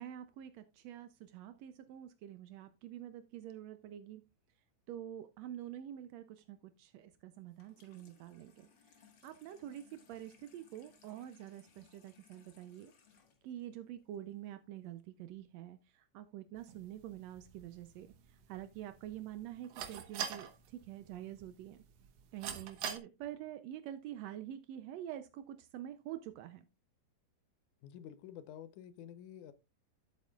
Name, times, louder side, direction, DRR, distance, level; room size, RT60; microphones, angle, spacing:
voice 1, 0.0-4.2 4.9-8.7 9.2-12.9 13.4-21.8 22.3-26.6, right 11 dB, 85° right, 1.5 m, -47 dB
Water tap faucet / Sink (filling or washing), 7.5-14.5, left 6 dB, 45° left, 1.8 m, -66 dB
sound 1, 16.6-23.0, right 8 dB, 65° right, 1.8 m, -46 dB
voice 2, 27.8-29.5, left 10 dB, 75° left, 2.2 m, -50 dB
12.5 x 8.1 x 2.3 m
omnidirectional pair, 3.8 m